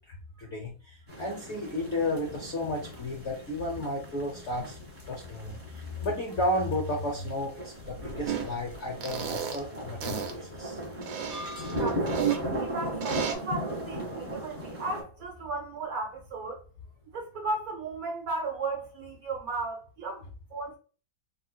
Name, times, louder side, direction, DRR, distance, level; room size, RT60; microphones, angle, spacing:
voice 1, 0.4-4.8 5.1-10.8, left 1 dB, 75° left, 0.6 m, -33 dB
sound 1, 1.1-15.0, right 1 dB, 15° right, 0.6 m, -38 dB
sound 2, 8.2-8.5 9.0-9.6 10.0-10.3 11.0-12.4 13.0-13.3, right 9 dB, 80° right, 1.3 m, -31 dB
sound 3, 11.3-12.3, left 1 dB, 35° right, 0.9 m, -42 dB
voice 2, 11.8-16.6 17.1-20.2 20.5-20.8, right 3 dB, 60° right, 1.1 m, -35 dB
3.6 x 2.5 x 2.2 m
omnidirectional pair, 2.1 m